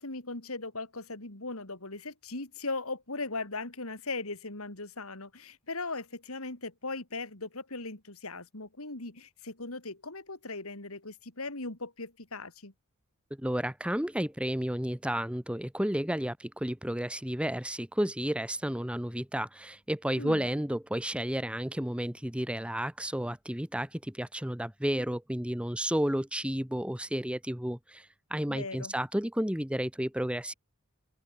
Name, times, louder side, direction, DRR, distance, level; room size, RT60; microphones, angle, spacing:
voice 1, 0.0-12.7 20.2-20.5 28.5-28.9, left 3 dB, 70° left, 3.6 m, -38 dB
voice 2, 13.4-30.5, equal, 5° right, 1.4 m, -32 dB
open air
head